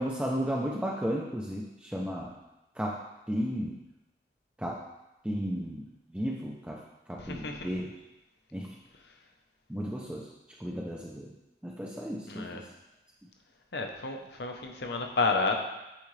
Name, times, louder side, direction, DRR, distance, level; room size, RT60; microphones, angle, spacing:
voice 1, 0.0-2.3 2.8-3.0 3.3-3.8 4.6-4.8 5.2-5.9 6.1-6.8 7.1-7.9 8.5-8.8 9.7-10.3 10.6-11.3 11.6-12.6, equal, 5° right, -2 dB, 0.4 m, -33 dB
voice 2, 7.2-7.9 12.3-12.6 13.7-15.6, left 3 dB, 65° left, 3 dB, 0.7 m, -31 dB
8.4 x 3.8 x 3.2 m, 0.94 s
head